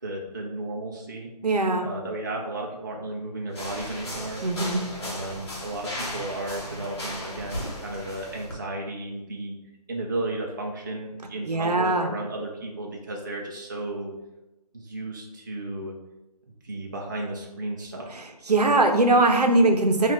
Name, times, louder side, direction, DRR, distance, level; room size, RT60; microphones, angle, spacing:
voice 1, 0.0-1.3 1.8-4.4 5.0-9.6 9.9-14.1 14.7-15.9 16.6-18.1, right 2 dB, 30° right, -1 dB, 0.4 m, -34 dB
voice 2, 1.4-1.9 4.4-4.8 11.4-12.1 18.5-20.1, right 2 dB, 75° right, 4 dB, 0.7 m, -21 dB
sound 1, 3.5-8.6, left 1 dB, 40° left, 1.0 m, -36 dB
5.5 x 2.4 x 3.0 m, 0.98 s
figure-of-eight pair, 155°, 21 cm